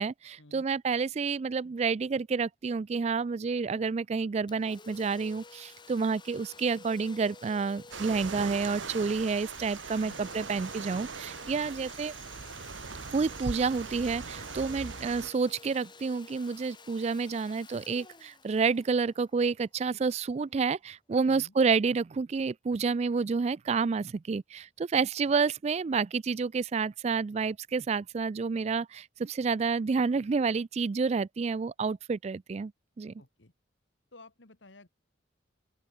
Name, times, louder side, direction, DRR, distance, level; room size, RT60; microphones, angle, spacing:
voice 1, 0.0-12.1 13.1-32.7 33.0-33.1, right 5 dB, 35° right, 0.3 m, -29 dB
Domestic sounds home sounds, 4.5-20.0, left 4 dB, 25° left, 2.8 m, -52 dB
sound 1, 7.9-15.3, right 4 dB, 85° right, 1.5 m, -40 dB
voice 2, 33.2-33.5 34.1-34.9, left 2 dB, 75° left, 2.2 m, -54 dB
open air
head